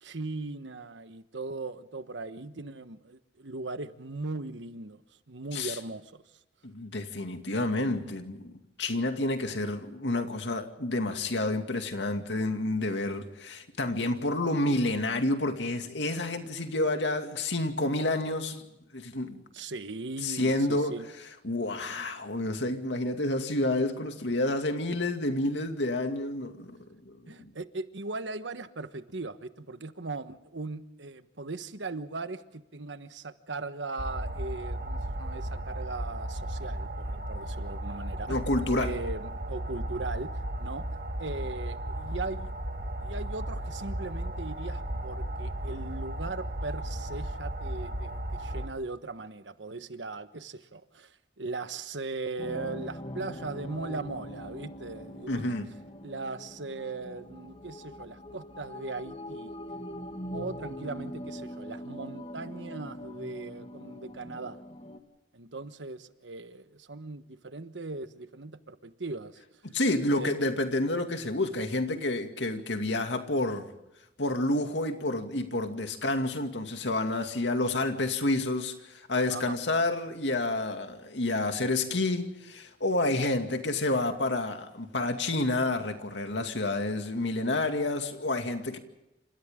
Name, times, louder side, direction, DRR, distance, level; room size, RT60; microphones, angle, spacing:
voice 1, 0.0-5.0 5.3-6.2 19.5-21.1 27.3-38.4 38.8-40.3 40.6-40.8 41.2-42.5 43.0-55.5 56.0-59.5 60.3-64.6 65.3-69.6 70.1-70.4 79.3-79.6, right 3 dB, 85° right, 1.3 m, -39 dB
voice 2, 6.6-8.5 8.8-18.6 18.9-19.4 20.2-21.0 21.4-26.8 27.0-27.5 38.3-39.0 55.3-55.7 69.7-73.7 74.2-88.8, left 2 dB, 85° left, 2.4 m, -29 dB
sound 1, 34.0-48.7, right 1 dB, 60° right, 2.2 m, -35 dB
sound 2, 52.4-65.0, equal, 35° left, 1.9 m, -42 dB
29.0 x 27.5 x 3.8 m
head